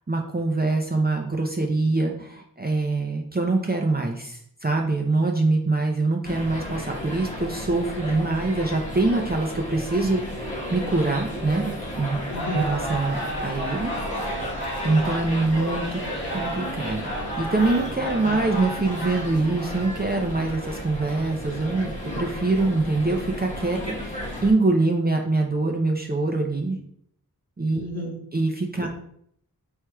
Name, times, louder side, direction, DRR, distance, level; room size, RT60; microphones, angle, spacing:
voice 1, 0.1-12.2 12.5-13.9 14.8-16.0 16.3-26.8 27.6-27.9 28.3-28.9, right 3 dB, 25° right, 1 dB, 0.6 m, -24 dB
sound 1, 6.2-24.5, left 1 dB, 20° left, 1.2 m, -34 dB
sound 2, 12.3-19.4, equal, 85° left, 1.4 m, -33 dB
voice 2, 12.3-12.7 27.7-28.2 28.8-28.9, left 1 dB, 45° left, -2 dB, 1.5 m, -32 dB
4.5 x 4.4 x 2.3 m, 0.67 s
wide cardioid pair, 45°, 37 cm